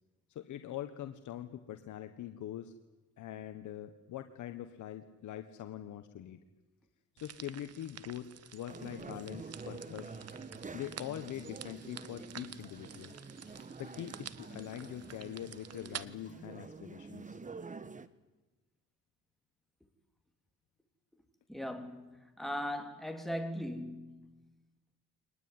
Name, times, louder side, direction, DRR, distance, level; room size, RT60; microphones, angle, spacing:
voice 1, 0.3-2.7 3.2-6.4 7.1-10.1 10.7-13.1 13.8-17.4, left 11 dB, 75° left, 1.5 m, -43 dB
sound 1, 7.2-16.1, right 9 dB, 55° right, 1.2 m, -50 dB
Walk footsteps / Chirp tweet / Stream, 8.2-16.7, left 4 dB, 30° left, 7.8 m, -66 dB
sound 2, 8.7-18.1, right 4 dB, 25° right, 1.4 m, -48 dB
voice 2, 21.5-24.4, equal, ahead, 3.3 m, -39 dB
24.0 x 20.0 x 9.7 m
cardioid pair, 90°, 30 cm